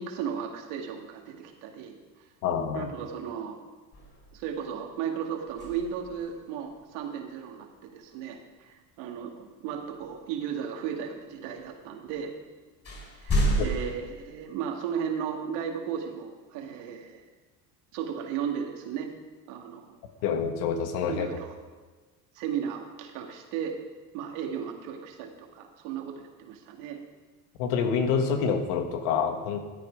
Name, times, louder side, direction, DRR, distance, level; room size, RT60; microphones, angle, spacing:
voice 1, 0.0-1.9 2.7-3.6 4.3-12.3 13.2-17.2 17.9-19.1 19.5-19.9 21.1-21.5 22.4-23.8 24.1-27.0, right 8 dB, 75° right, 2 dB, 2.2 m, -35 dB
voice 2, 2.4-2.9 13.6-13.7 20.2-21.3 27.6-29.6, left 6 dB, 80° left, 7 dB, 1.6 m, -27 dB
sound 1, 3.9-4.7 5.5-6.4 9.9-10.0 12.1-12.2 12.8-14.0, right 1 dB, 30° left, 4.7 m, -30 dB
13.5 x 8.7 x 5.2 m, 1.4 s
supercardioid pair, 95°, 47 cm